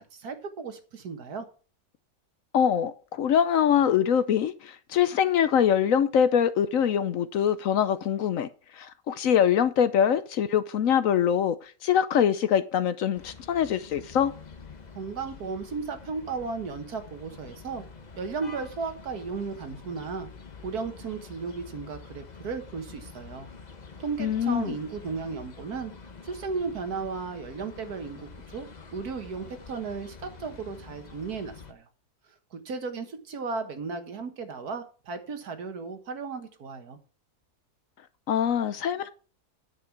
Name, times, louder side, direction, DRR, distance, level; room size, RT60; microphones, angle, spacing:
voice 1, 0.0-1.5 15.0-17.8 18.2-20.3 20.6-23.5 24.0-25.9 26.2-31.9 32.5-37.0, right 4 dB, 75° right, 1.9 m, -35 dB
voice 2, 2.5-8.5 8.7-14.3 24.2-24.7 38.3-39.1, left 8 dB, 65° left, 1.0 m, -24 dB
sound 1, 13.1-31.7, left 5 dB, 30° left, 0.9 m, -47 dB
9.5 x 7.5 x 4.6 m
omnidirectional pair, 1.7 m